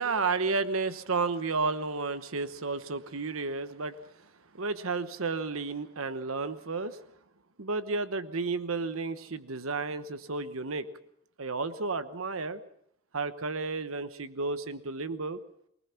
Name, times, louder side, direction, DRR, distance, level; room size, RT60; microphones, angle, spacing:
voice 1, 0.0-7.0 7.6-10.9 11.4-12.6 13.1-15.4, right 4 dB, 75° right, 12 dB, 1.1 m, -32 dB
24.0 x 19.5 x 5.9 m, 0.73 s
head